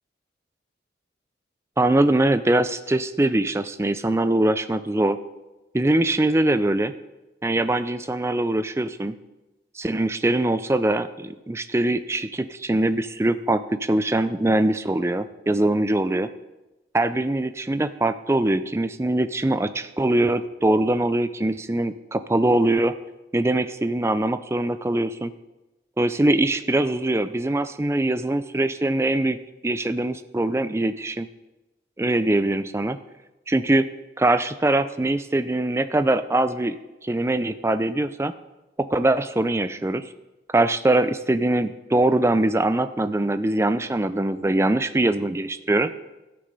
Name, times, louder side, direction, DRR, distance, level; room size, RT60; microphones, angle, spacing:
voice 1, 1.8-5.2 5.7-6.9 7.4-9.2 9.8-16.3 16.9-22.9 23.3-25.3 26.0-29.4 29.6-31.3 32.0-33.0 33.5-33.9 34.2-36.8 37.0-38.3 38.8-40.0 40.5-45.9, right 1 dB, 15° right, 11 dB, 0.4 m, -22 dB
13.0 x 6.8 x 5.4 m, 1.0 s
head